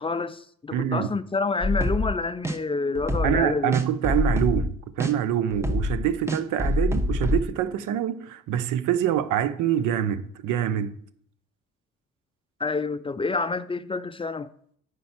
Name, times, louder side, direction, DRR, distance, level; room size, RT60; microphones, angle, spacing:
voice 1, 0.0-3.7 12.6-14.5, left 4 dB, 20° left, 0.3 m, -28 dB
voice 2, 0.7-1.1 3.2-11.0, right 10 dB, 85° right, 0.6 m, -25 dB
sound 1, 1.6-2.1 2.4-2.6 3.0-3.4 3.7-4.7 5.0-5.1 5.5-7.4, left 1 dB, 10° right, 0.8 m, -25 dB
8.2 x 5.2 x 5.7 m
cardioid pair, 90°, 30 cm